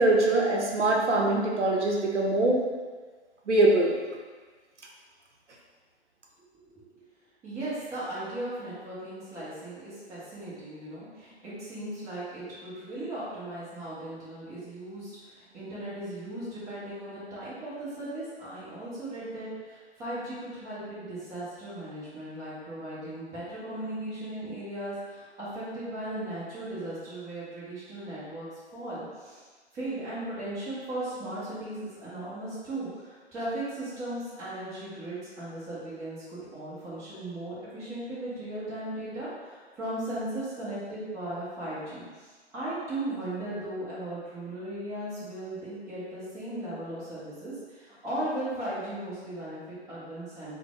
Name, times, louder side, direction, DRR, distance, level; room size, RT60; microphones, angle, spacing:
voice 1, 0.0-2.6 3.5-3.9, right 2 dB, 85° right, -1 dB, 0.6 m, -23 dB
voice 2, 6.7-7.1 7.4-28.5 28.7-29.4 29.7-50.6, right 1 dB, 10° right, -10 dB, 0.6 m, -37 dB
3.3 x 2.1 x 2.3 m, 1.4 s
figure-of-eight pair, 120°, 34 cm